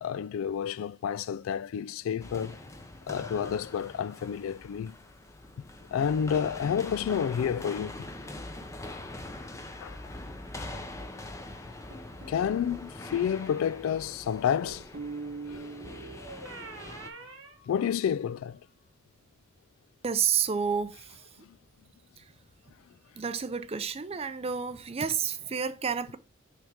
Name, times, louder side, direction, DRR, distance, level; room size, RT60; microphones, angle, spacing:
voice 1, 0.0-2.6 3.1-4.9 5.9-8.1 9.8-10.0 12.3-14.9 15.5-15.7 17.7-18.6, left 8 dB, 80° left, 0.3 m, -30 dB
sound 1, 2.2-17.1, left 1 dB, 15° left, 0.6 m, -43 dB
sound 2, 11.9-12.7 14.6-18.4, right 3 dB, 70° right, 1.2 m, -43 dB
voice 2, 20.0-21.2 22.2-22.3 23.2-26.2, right 7 dB, 30° right, 0.5 m, -30 dB
6.4 x 3.5 x 4.7 m
head